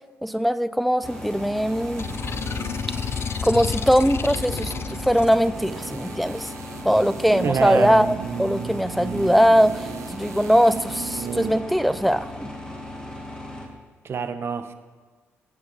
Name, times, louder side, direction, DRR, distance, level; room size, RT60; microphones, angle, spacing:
voice 1, 0.2-2.1 3.4-4.7 5.0-6.5 6.8-8.1 8.4-12.5, equal, ahead, 13 dB, 0.6 m, -21 dB
sound 1, 1.0-13.7, left 1 dB, 15° left, 2.8 m, -37 dB
sound 2, 1.0-11.7 11.9-12.0, right 8 dB, 70° right, 0.6 m, -36 dB
sound 3, 2.0-5.4, left 7 dB, 50° left, 0.6 m, -30 dB
voice 2, 7.4-8.0 14.0-14.7, right 6 dB, 55° right, 10 dB, 1.1 m, -26 dB
17.5 x 8.6 x 5.7 m, 1.4 s
cardioid pair, 75°, 5 cm